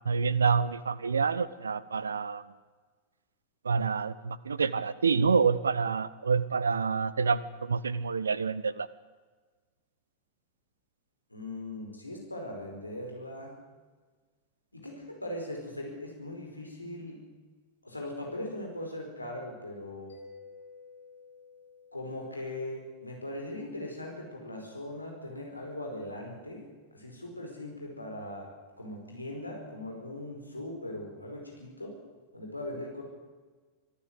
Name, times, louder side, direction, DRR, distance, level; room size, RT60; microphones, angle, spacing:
voice 1, 0.0-2.4 3.6-8.9, right 5 dB, 75° right, 19 dB, 0.8 m, -27 dB
voice 2, 11.3-13.5 14.7-17.2 17.8-20.1 21.9-26.6 26.9-28.5 28.8-32.0 32.3-33.0, left 1 dB, 85° left, 1 dB, 4.9 m, -40 dB
Mallet percussion, 20.1-23.6, left 4 dB, 70° left, 6.0 m, -53 dB
24.0 x 14.5 x 8.2 m, 1.4 s
figure-of-eight pair, 90°, 0 cm